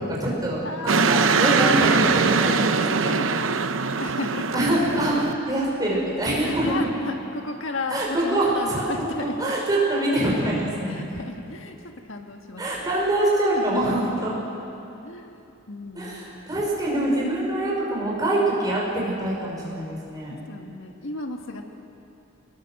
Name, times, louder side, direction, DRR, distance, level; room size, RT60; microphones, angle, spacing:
voice 1, 0.0-3.2 4.5-5.2 5.5-6.8 7.9-11.1 12.6-14.3 15.9-20.4, right 1 dB, 20° right, -5 dB, 6.0 m, -25 dB
voice 2, 0.6-1.5 2.9-3.7 4.0-4.6 6.4-9.4 10.9-11.8 12.1-12.6 13.6-14.0 15.0-16.3 20.3-21.7, left 2 dB, 70° left, 4 dB, 1.5 m, -34 dB
sound 1, 0.9-5.4, right 5 dB, 75° right, 0.8 m, -22 dB
25.0 x 21.5 x 6.5 m, 2.8 s
head